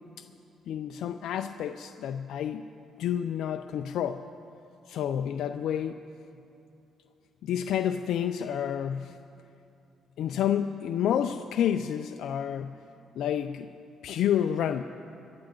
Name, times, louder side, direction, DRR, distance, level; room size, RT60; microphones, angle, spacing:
voice 1, 0.7-2.7 3.0-4.2 4.9-6.0 7.4-9.2 10.2-12.8 13.2-13.7 14.0-14.8, left 9 dB, 75° left, 6 dB, 0.5 m, -29 dB
27.0 x 12.0 x 3.9 m, 2.7 s
cardioid pair, 95°, 0 cm